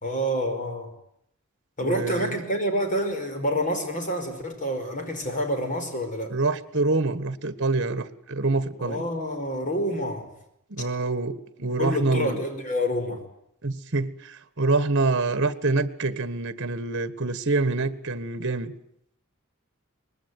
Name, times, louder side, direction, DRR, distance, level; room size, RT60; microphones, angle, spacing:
voice 1, 0.0-0.9 1.8-6.3 8.8-10.2 11.8-13.2, equal, 40° left, 6 dB, 5.0 m, -28 dB
voice 2, 1.8-2.4 6.3-9.0 10.7-12.4 13.6-18.7, right 3 dB, 60° right, 14 dB, 1.5 m, -26 dB
24.5 x 20.5 x 9.4 m, 0.75 s
head